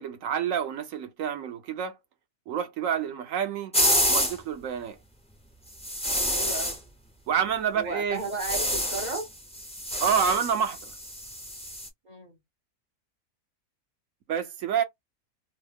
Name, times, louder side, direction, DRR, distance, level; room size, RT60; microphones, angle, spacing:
voice 1, 0.0-2.0 2.5-3.7 4.1-5.0 7.3-8.2 10.0-10.9 14.3-14.8, right 7 dB, 70° right, 0.9 m, -28 dB
sound 1, 3.7-4.4 5.8-6.8 8.2-9.3 9.5-11.9, equal, 10° left, 0.4 m, -27 dB
voice 2, 6.3-6.8 7.7-9.3 12.0-12.4, right 3 dB, 45° right, 0.6 m, -34 dB
3.0 x 2.0 x 3.3 m
omnidirectional pair, 1.6 m